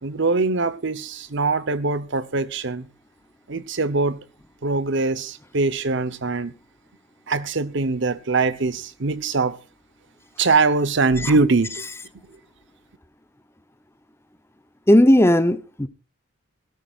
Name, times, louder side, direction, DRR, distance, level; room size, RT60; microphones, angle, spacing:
voice 1, 0.0-2.9 3.5-4.2 4.6-6.5 7.3-9.6 10.4-11.8, right 3 dB, 65° right, 0.9 m, -22 dB
voice 2, 14.9-15.9, left 1 dB, 15° left, 0.8 m, -16 dB
21.5 x 13.5 x 2.4 m
head